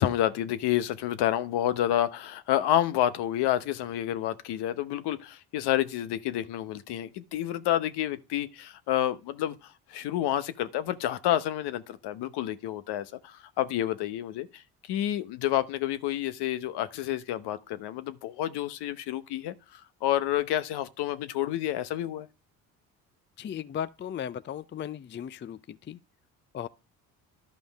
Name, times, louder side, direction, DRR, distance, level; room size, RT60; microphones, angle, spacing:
voice 1, 0.0-22.3, left 12 dB, 65° left, 0.9 m, -29 dB
voice 2, 23.4-26.0 26.5-26.7, left 9 dB, 30° left, 0.5 m, -36 dB
11.5 x 5.2 x 3.4 m
hypercardioid pair, 55°, 42 cm